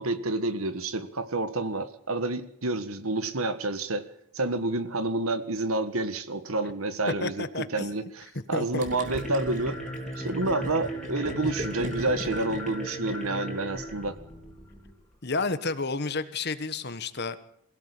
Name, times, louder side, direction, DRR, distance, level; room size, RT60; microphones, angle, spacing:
voice 1, 0.0-4.1 4.3-9.8 10.2-14.2, right 2 dB, 75° right, 11 dB, 1.6 m, -29 dB
voice 2, 7.2-7.9 8.5-8.8 15.2-17.4, left 3 dB, 45° left, 12 dB, 1.3 m, -31 dB
sound 1, 8.7-15.0, equal, 5° left, 4.0 m, -37 dB
Gurgling, 8.8-13.5, right 1 dB, 35° right, 2.7 m, -39 dB
22.5 x 16.5 x 8.4 m, 0.70 s
head